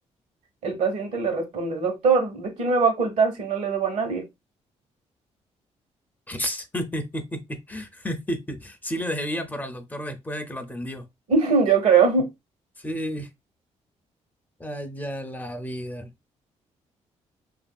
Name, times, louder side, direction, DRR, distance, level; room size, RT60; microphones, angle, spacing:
voice 1, 0.6-4.2 11.3-12.3, right 5 dB, 75° right, 1.0 m, -22 dB
voice 2, 6.3-11.0 12.8-13.3 14.6-16.1, equal, 15° left, 0.4 m, -32 dB
2.7 x 2.6 x 2.2 m
cardioid pair, 100°, 12 cm